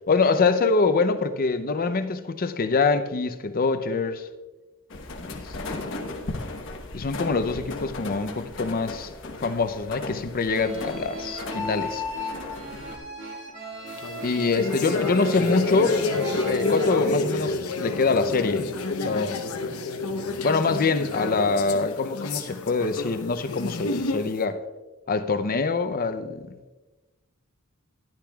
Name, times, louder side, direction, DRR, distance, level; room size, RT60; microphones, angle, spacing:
voice 1, 0.1-4.3 5.3-6.0 6.9-12.0 14.2-16.0 16.3-18.7 19.0-19.4 20.4-24.6 25.1-26.6, left 4 dB, 40° left, 10 dB, 0.6 m, -25 dB
sound 1, 4.9-13.0, left 2 dB, 60° left, 1.2 m, -36 dB
sound 2, 10.4-17.0, left 1 dB, 55° right, 1.9 m, -36 dB
sound 3, 13.9-24.4, left 2 dB, 75° left, 0.9 m, -29 dB
13.0 x 10.5 x 2.4 m, 1.2 s
head